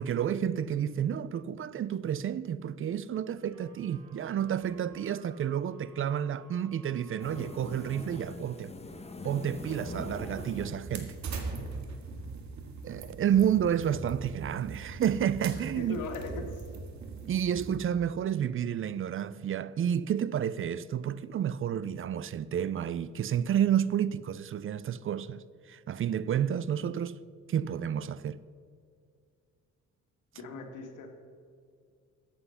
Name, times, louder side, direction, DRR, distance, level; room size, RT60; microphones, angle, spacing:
voice 1, 0.0-8.7 9.2-11.1 12.8-16.0 17.3-27.2 27.5-28.4, right 9 dB, 45° right, 0.4 m, -30 dB
sound 1, 3.3-8.4, right 1 dB, 85° right, 2.2 m, -55 dB
sound 2, 7.2-11.8, left 2 dB, 20° left, 1.3 m, -43 dB
sound 3, 9.5-17.8, right 4 dB, 70° right, 1.8 m, -41 dB
voice 2, 15.8-16.6 30.3-31.1, left 4 dB, 85° left, 1.8 m, -39 dB
14.0 x 7.9 x 5.7 m
cardioid pair, 90°, 30 cm